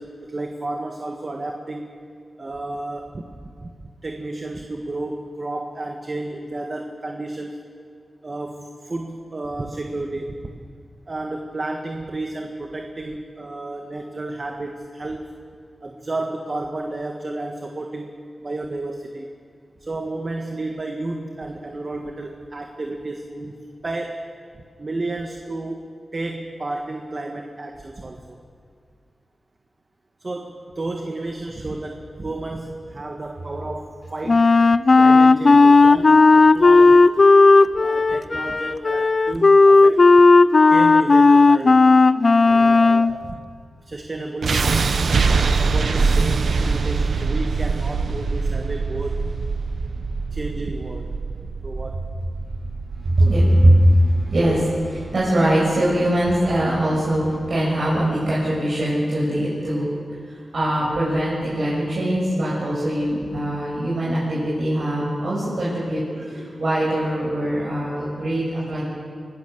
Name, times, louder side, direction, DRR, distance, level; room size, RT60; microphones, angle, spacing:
voice 1, 0.0-1.9 2.4-3.7 4.0-7.6 8.2-10.6 11.1-15.3 15.8-19.3 19.8-23.6 23.8-24.2 24.8-28.4 30.2-34.5 34.9-37.1 37.8-40.0 40.7-41.8 42.4-43.4 43.8-44.7 45.4-49.3 50.3-51.2 51.6-52.0 53.2-53.5, right 2 dB, 40° right, 3 dB, 1.7 m, -32 dB
Wind instrument woodwind instrument, 34.3-43.1, left 3 dB, 45° left, 0.6 m, -13 dB
sound 1, 44.4-56.5, right 4 dB, 80° right, 1.1 m, -24 dB
voice 2, 53.0-59.9 60.3-68.8, right 1 dB, 65° right, -8 dB, 7.2 m, -21 dB
24.5 x 18.0 x 6.8 m, 2.2 s
wide cardioid pair, 75°, 0 cm